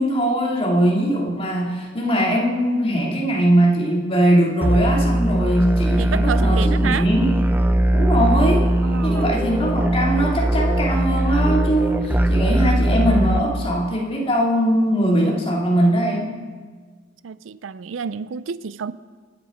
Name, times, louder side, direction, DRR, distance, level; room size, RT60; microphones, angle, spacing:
voice 1, 0.0-7.4 7.9-8.7 9.0-16.3, right 1 dB, 30° left, 2.5 m, -21 dB
sound 1, 4.6-13.4, right 1 dB, 10° right, 0.6 m, -20 dB
voice 2, 6.0-7.1 8.8-9.3 17.2-18.9, right 6 dB, 80° right, 0.4 m, -29 dB
24.0 x 8.1 x 5.0 m
head